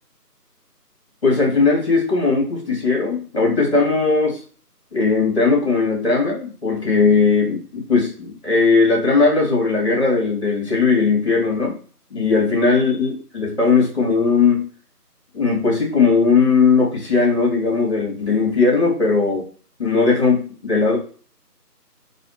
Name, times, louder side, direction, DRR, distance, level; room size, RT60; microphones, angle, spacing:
voice 1, 1.2-4.4 4.9-11.8 12.1-14.7 15.3-19.5 19.8-21.0, left 4 dB, 40° left, -2 dB, 1.8 m, -18 dB
4.1 x 2.5 x 3.0 m, 0.39 s
figure-of-eight pair, 180°, 48 cm